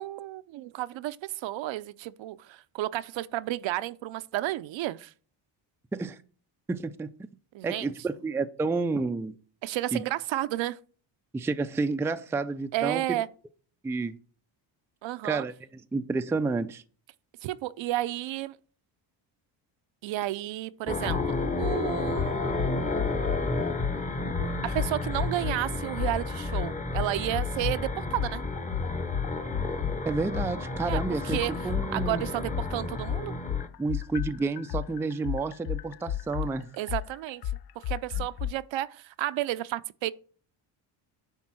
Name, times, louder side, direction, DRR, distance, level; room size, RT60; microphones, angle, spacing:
voice 1, 0.0-5.1 7.5-7.9 9.6-10.8 12.7-13.3 15.0-15.4 17.4-18.6 20.0-22.5 24.4-28.4 30.9-31.5 31.9-33.3 36.8-37.4 37.8-40.1, right 15 dB, 70° right, 0.6 m, -32 dB
voice 2, 6.7-7.1 7.6-9.3 9.9-10.0 11.3-13.2 13.8-14.2 15.2-15.5 15.9-16.8 30.1-32.3 33.8-36.7, right 3 dB, 5° right, 0.3 m, -30 dB
sound 1, 20.9-33.7, left 2 dB, 15° left, 0.8 m, -32 dB
sound 2, 21.1-21.2 21.6-21.8 22.1-23.4 23.8-24.0 24.3-25.6 26.0-26.1 26.5-27.8 28.1-32.1 32.5-38.5, left 11 dB, 55° left, 0.5 m, -32 dB
9.9 x 3.7 x 6.1 m
cardioid pair, 105°, 48 cm